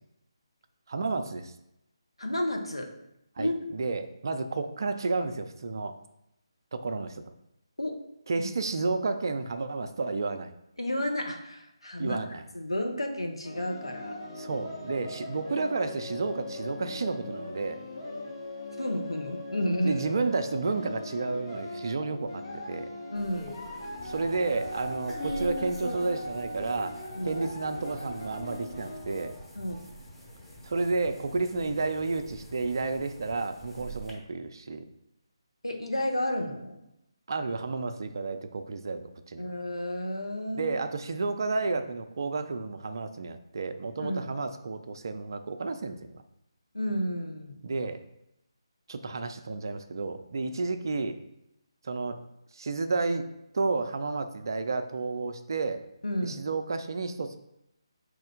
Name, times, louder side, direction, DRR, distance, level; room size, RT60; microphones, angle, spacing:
voice 1, 0.9-1.5 3.4-5.9 6.7-7.2 8.3-10.5 12.0-12.4 14.4-17.8 19.8-22.9 24.0-27.0 27.2-29.4 30.6-34.9 37.3-39.5 40.5-46.2 47.6-48.0 48.9-51.2 51.8-52.2 52.5-53.2 53.5-55.8 56.2-57.4, right 3 dB, 50° right, 9 dB, 0.4 m, -31 dB
voice 2, 2.2-2.9 3.4-3.5 7.8-8.0 8.4-8.5 10.8-12.2 12.5-14.2 18.8-20.0 23.1-23.6 27.1-27.4 29.6-29.8 35.6-36.8 39.4-40.7 44.0-44.2 46.7-47.6 56.0-56.4, left 1 dB, 85° left, 3 dB, 0.8 m, -31 dB
sound 1, 13.4-29.3, left 1 dB, 60° left, 1.3 m, -40 dB
sound 2, 23.1-34.1, equal, 5° left, 0.7 m, -43 dB
4.2 x 3.2 x 3.7 m, 0.83 s
figure-of-eight pair, 150°, 3 cm